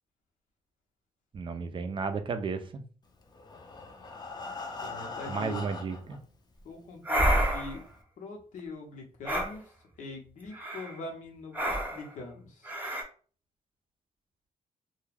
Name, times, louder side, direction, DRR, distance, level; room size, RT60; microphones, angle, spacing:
voice 1, 1.3-2.8 5.3-6.2, right 5 dB, 40° right, 8 dB, 0.4 m, -33 dB
Breathing, 3.2-6.2 6.9-7.0 7.4-7.5 7.9-8.0, left 3 dB, 30° left, 0.5 m, -41 dB
voice 2, 4.8-5.6 6.6-7.8 8.2-9.6 10.0-11.6 11.9-12.7, left 3 dB, 75° left, 1 dB, 0.8 m, -42 dB
sound 1, 7.0-7.8 9.2-9.5 10.5-10.9 11.5-12.1 12.6-13.0, right 1 dB, 15° right, 0.7 m, -28 dB
2.2 x 2.2 x 3.2 m, 0.40 s
cardioid pair, 105°, 13 cm